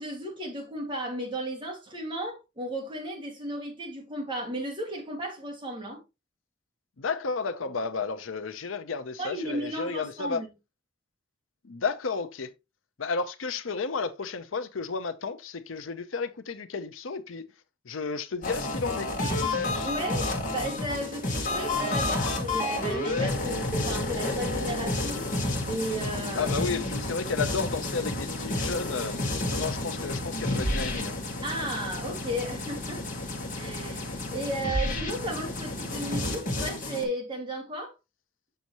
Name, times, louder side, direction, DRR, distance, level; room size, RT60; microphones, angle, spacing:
voice 1, 0.0-6.0 9.2-10.5 19.8-25.3 25.6-26.5 31.4-33.0 33.6-37.9, right 1 dB, 25° right, 2.1 m, -34 dB
voice 2, 7.0-10.4 11.6-12.5 13.0-17.5 17.8-19.9 26.3-29.2 29.5-31.2, left 4 dB, 80° left, 0.7 m, -32 dB
sound 1, 18.4-37.0, left 2 dB, 40° left, 1.9 m, -30 dB
6.9 x 6.4 x 3.0 m
head